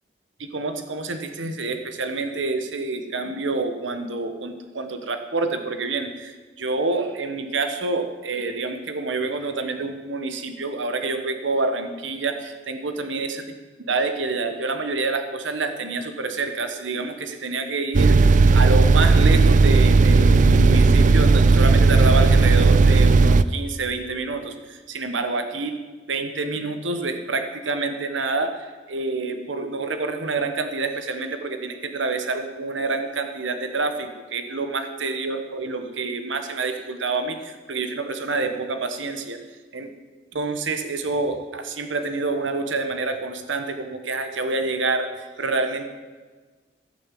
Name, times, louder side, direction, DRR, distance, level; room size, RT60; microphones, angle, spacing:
voice 1, 0.4-13.4 13.9-25.8 26.1-39.4 39.7-39.9 40.3-45.9, right 3 dB, 90° right, 8 dB, 1.2 m, -27 dB
sound 1, 17.9-23.4, right 4 dB, 40° right, 0.4 m, -15 dB
16.0 x 6.4 x 7.5 m, 1.4 s
head